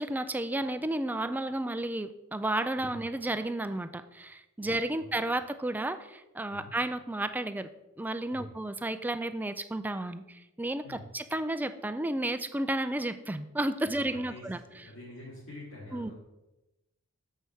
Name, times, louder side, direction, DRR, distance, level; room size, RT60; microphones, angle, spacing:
voice 1, 0.0-7.7 8.0-14.6 15.9-16.1, right 1 dB, 10° right, 10 dB, 0.3 m, -32 dB
voice 2, 4.6-5.0 6.5-6.7 8.3-8.5 10.8-11.0 13.8-14.5 14.8-16.1, left 2 dB, 60° left, -9 dB, 2.7 m, -46 dB
7.8 x 5.6 x 4.6 m, 0.97 s
head